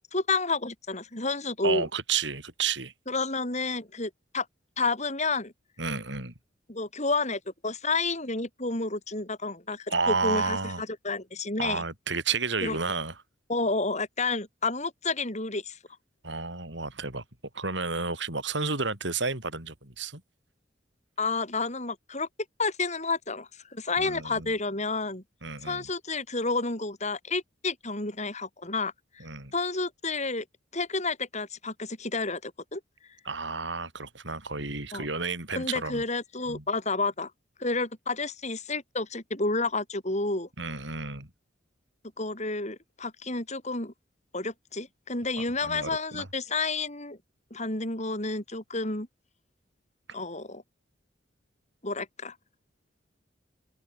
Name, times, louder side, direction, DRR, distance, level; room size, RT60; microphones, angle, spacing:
voice 1, 0.1-1.9 3.1-4.5 4.8-5.5 6.7-10.6 11.0-11.8 12.6-12.8 13.5-15.8 21.2-22.3 22.6-25.2 25.6-29.2 29.5-30.5 30.7-32.8 34.9-35.1 35.5-37.3 37.6-40.5 42.2-43.9 44.3-47.2 47.5-49.1 50.1-50.6 51.8-52.4, left 3 dB, 35° left, 7.2 m, -30 dB
voice 2, 1.6-2.9 5.8-6.3 9.9-10.8 11.6-13.2 16.2-17.2 17.5-20.2 24.0-24.5 25.4-25.9 29.2-29.5 33.2-36.0 36.5-36.6 40.6-41.3 45.4-46.3, right 4 dB, 65° right, 6.9 m, -31 dB
open air
head